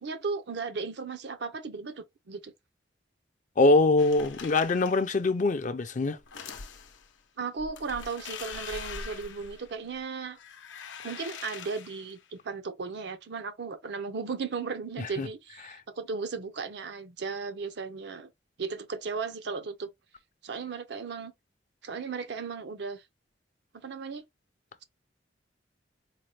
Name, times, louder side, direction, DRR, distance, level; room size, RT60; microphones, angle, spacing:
voice 1, 0.0-2.5 7.4-10.4 11.0-18.3 18.6-19.9 20.4-21.3 21.8-23.0 23.7-24.2, right 4 dB, 60° right, 0.5 m, -36 dB
voice 2, 3.6-6.2 15.0-15.3 15.7-15.8, left 2 dB, 45° left, 0.5 m, -23 dB
sound 1, 4.0-5.1 6.2-7.1 7.6-10.0 10.3-12.2, left 5 dB, 85° left, 0.7 m, -43 dB
4.1 x 2.1 x 3.2 m
head